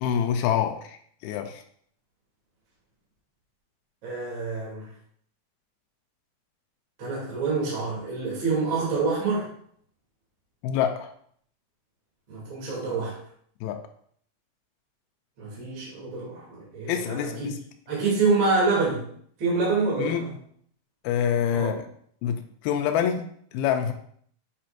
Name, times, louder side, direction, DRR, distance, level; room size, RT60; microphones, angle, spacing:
voice 1, 0.0-1.0 1.2-1.6 10.6-11.1 13.6-13.8 16.9-17.6 20.0-20.3 21.0-21.8 22.2-23.3 23.5-23.9, left 8 dB, 90° left, 5 dB, 2.2 m, -26 dB
voice 2, 4.0-4.9 7.0-9.5 12.3-13.2 15.4-17.5 17.9-19.0 19.4-20.3 21.5-21.7, right 4 dB, 30° right, -6 dB, 2.8 m, -26 dB
8.4 x 5.8 x 2.5 m, 0.62 s
omnidirectional pair, 5.0 m